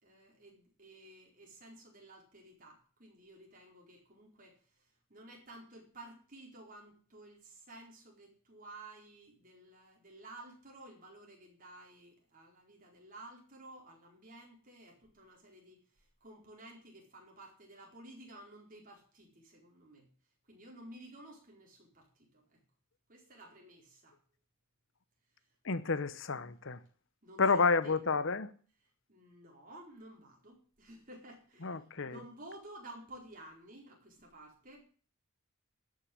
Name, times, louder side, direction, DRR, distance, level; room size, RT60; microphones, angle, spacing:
voice 1, 0.0-20.1 20.5-22.6 23.1-24.2 27.2-28.0 29.1-34.8, right 1 dB, 40° right, 4.4 m, -54 dB
voice 2, 25.6-26.8 27.4-28.5 31.6-32.2, left 4 dB, 60° left, 0.8 m, -30 dB
12.5 x 6.5 x 8.7 m
head